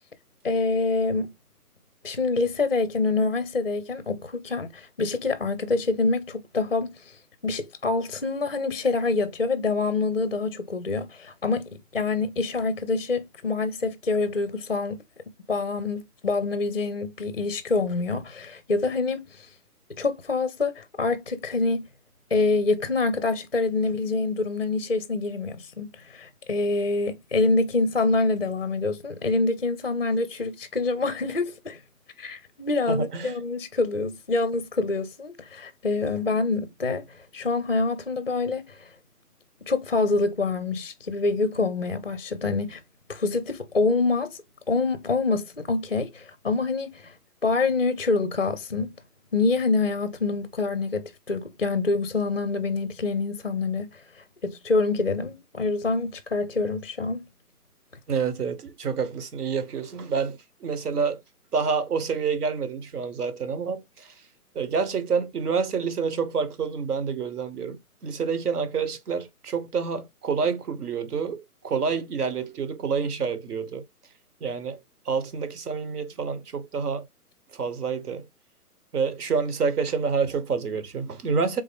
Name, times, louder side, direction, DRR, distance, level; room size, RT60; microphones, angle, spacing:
voice 1, 0.4-1.3 2.0-7.2 7.4-15.0 15.5-19.5 19.9-21.9 22.3-31.8 32.2-38.9 39.7-42.8 43.1-44.4 44.7-47.1 47.4-48.9 49.3-54.0 54.4-57.3, left 3 dB, 40° left, 0.4 m, -26 dB
voice 2, 32.9-33.3 58.1-61.2 61.5-64.1 64.5-73.8 74.4-74.8 75.0-77.1 77.5-78.3 78.9-81.6, right 5 dB, 75° right, 1.2 m, -28 dB
3.7 x 3.6 x 3.4 m
hypercardioid pair, 170°, 46 cm